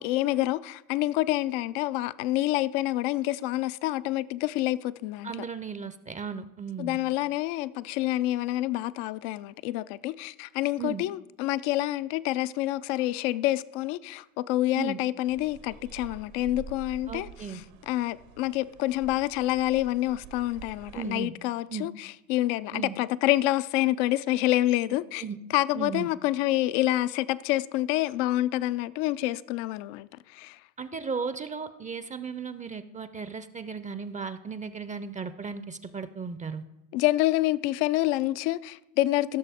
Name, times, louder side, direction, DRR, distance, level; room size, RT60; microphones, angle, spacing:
voice 1, 0.0-5.3 6.8-17.3 17.9-25.2 25.5-30.6 36.9-39.4, left 16 dB, 65° left, 0.5 m, -27 dB
voice 2, 5.2-7.0 10.8-11.0 14.8-15.0 17.1-17.6 20.9-21.3 21.7-21.9 22.7-23.0 25.2-25.4 25.7-26.1 30.8-36.6, right 6 dB, 20° right, 0.5 m, -36 dB
sound 1, 15.2-21.1, right 5 dB, 80° right, 1.4 m, -47 dB
16.0 x 6.7 x 3.5 m
hypercardioid pair, 75°, 38 cm